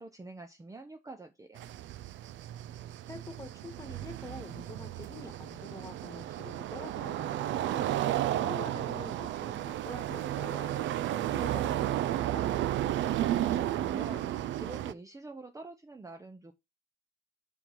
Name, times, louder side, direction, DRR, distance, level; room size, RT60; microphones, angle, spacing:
voice 1, 0.0-1.6 13.1-16.5, right 3 dB, 15° right, 0.7 m, -46 dB
sound 1, 1.6-14.9, right 12 dB, 70° right, 0.4 m, -33 dB
voice 2, 3.1-7.8 8.3-12.6, left 2 dB, 15° left, 1.8 m, -46 dB
5.4 x 4.5 x 5.9 m
cardioid pair, 90°, 20 cm